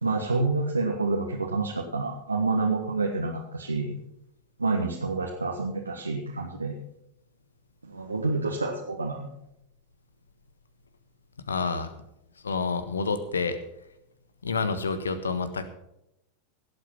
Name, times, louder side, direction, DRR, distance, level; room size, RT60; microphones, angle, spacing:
voice 1, 0.0-4.0 4.6-6.8 7.8-9.3, right 3 dB, 80° right, 0 dB, 1.4 m, -28 dB
voice 2, 11.5-11.9 12.4-13.6 14.4-15.7, left 4 dB, 70° left, 12 dB, 1.3 m, -28 dB
17.5 x 8.3 x 5.8 m, 0.81 s
figure-of-eight pair, 90°, 0 cm